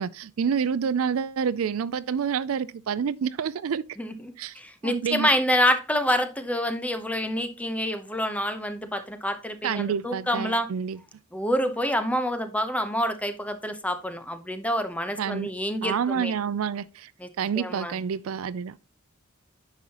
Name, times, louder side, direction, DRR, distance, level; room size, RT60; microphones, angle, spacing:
voice 1, 0.0-3.8 4.4-4.6 4.8-5.3 9.6-11.0 15.2-15.5 15.8-17.1 17.4-18.7, right 7 dB, 70° right, 0.4 m, -28 dB
voice 2, 4.0-10.7 11.3-16.3 17.2-17.3 17.6-18.0, equal, 5° left, 0.8 m, -27 dB
9.9 x 5.6 x 2.9 m
head